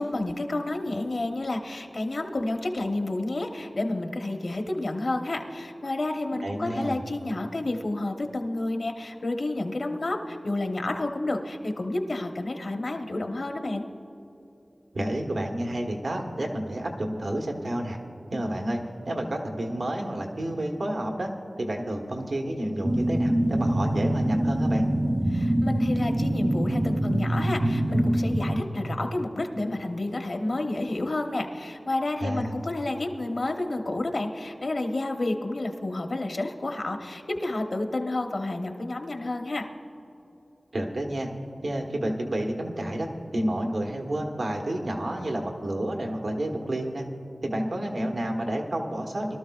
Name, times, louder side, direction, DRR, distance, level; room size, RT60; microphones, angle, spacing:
voice 1, 0.0-13.8 25.3-39.7, left 2 dB, 70° left, 4 dB, 1.0 m, -30 dB
voice 2, 6.4-7.0 14.9-18.0 18.3-21.3 21.6-24.8 32.2-32.6 40.7-41.3 41.6-43.1 43.3-47.0 47.4-49.4, right 1 dB, 80° right, 1 dB, 1.3 m, -30 dB
sound 1, 22.8-28.6, right 1 dB, 30° right, 0.6 m, -24 dB
22.5 x 12.5 x 2.4 m, 3.0 s
wide cardioid pair, 65°, 0 cm